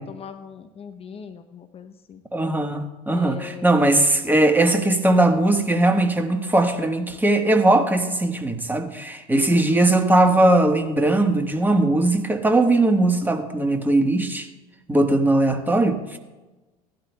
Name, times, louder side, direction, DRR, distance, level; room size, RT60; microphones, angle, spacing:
voice 1, 0.1-2.2 3.1-3.8 9.5-9.8, left 7 dB, 30° left, 9 dB, 0.8 m, -40 dB
voice 2, 2.3-14.5 14.9-16.2, right 2 dB, 10° right, 6 dB, 1.4 m, -19 dB
17.5 x 11.5 x 2.3 m, 1.1 s
figure-of-eight pair, 70°, 18 cm